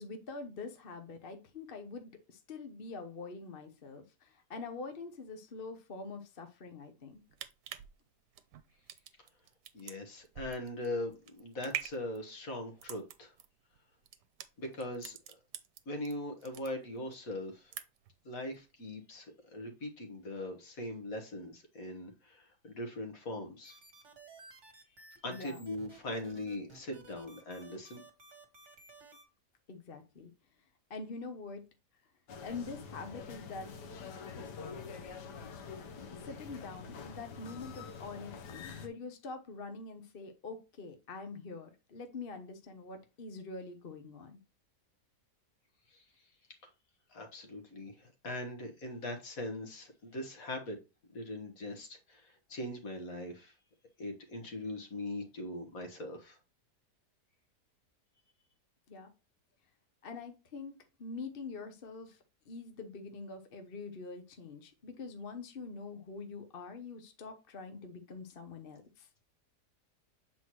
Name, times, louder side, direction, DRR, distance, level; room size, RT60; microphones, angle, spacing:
voice 1, 0.0-7.2 25.2-25.6 29.7-30.3 30.9-31.6 32.4-33.7 34.4-34.5 36.2-44.4 58.9-59.1 60.0-62.2 62.5-69.1, left 4 dB, 40° left, 6 dB, 0.9 m, -45 dB
sound 1, 7.1-16.1 16.4-17.2 17.5-18.2 18.5-18.6, right 11 dB, 80° right, 1.3 m, -45 dB
voice 2, 9.7-13.3 14.6-15.4 15.8-17.7 18.2-23.8 25.2-28.0 45.9-46.0 47.1-50.8 51.1-53.5 54.0-56.4, left 1 dB, 55° left, 5 dB, 1.8 m, -41 dB
sound 2, 23.6-29.2, right 3 dB, 45° right, 1.6 m, -55 dB
sound 3, 32.3-38.9, left 5 dB, 85° left, 1.5 m, -46 dB
7.8 x 4.3 x 3.0 m, 0.28 s
omnidirectional pair, 1.8 m